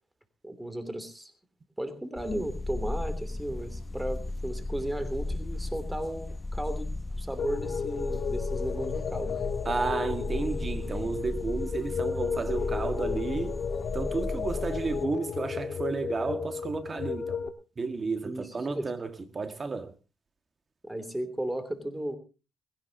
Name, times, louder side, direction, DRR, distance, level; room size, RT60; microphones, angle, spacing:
voice 1, 0.4-1.3 1.8-9.3 18.2-18.9 20.8-22.2, right 1 dB, 10° right, 3.2 m, -35 dB
sound 1, 2.2-15.1, left 2 dB, 15° left, 0.7 m, -35 dB
sound 2, 7.4-17.5, left 6 dB, 55° left, 1.7 m, -34 dB
voice 2, 9.7-13.6 13.9-17.4 17.8-19.9, right 4 dB, 35° right, 1.8 m, -32 dB
20.5 x 16.5 x 2.9 m
cardioid pair, 90°, 0 cm